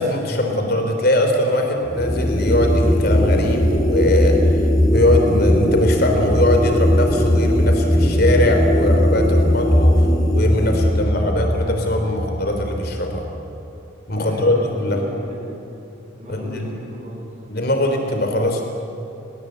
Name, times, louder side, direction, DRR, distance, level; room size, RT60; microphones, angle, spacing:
voice 1, 0.0-4.6 4.9-13.2 14.1-15.0 16.3-16.7 17.5-18.6, left 1 dB, 50° left, 4 dB, 3.4 m, -21 dB
sound 1, 1.9-13.2, equal, 20° left, 3.5 m, -18 dB
voice 2, 14.1-15.6 16.2-17.3, equal, 35° right, -2 dB, 7.3 m, -35 dB
29.5 x 20.0 x 8.0 m, 2.8 s
head